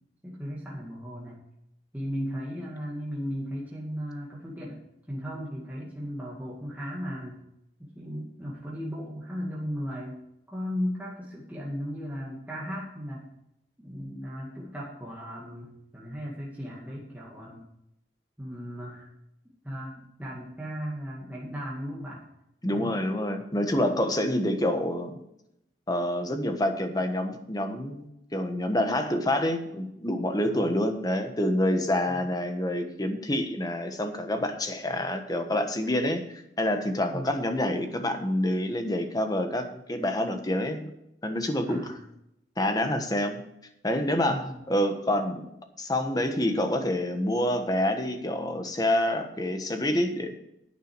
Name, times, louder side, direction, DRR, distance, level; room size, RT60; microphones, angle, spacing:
voice 1, 0.2-1.4 1.9-4.8 5.1-7.4 7.8-10.2 10.5-13.3 13.8-17.6 18.4-19.1 19.6-22.2 22.7-23.0 30.4-30.7 32.1-32.3 37.1-37.3 41.7-42.0 44.3-44.6, equal, 10° right, -5 dB, 2.1 m, -36 dB
voice 2, 22.6-25.2 25.9-40.9 41.2-42.0 42.6-43.4 43.8-45.5 45.8-50.3, left 1 dB, 20° left, 6 dB, 1.3 m, -27 dB
10.5 x 9.2 x 4.7 m, 0.82 s
head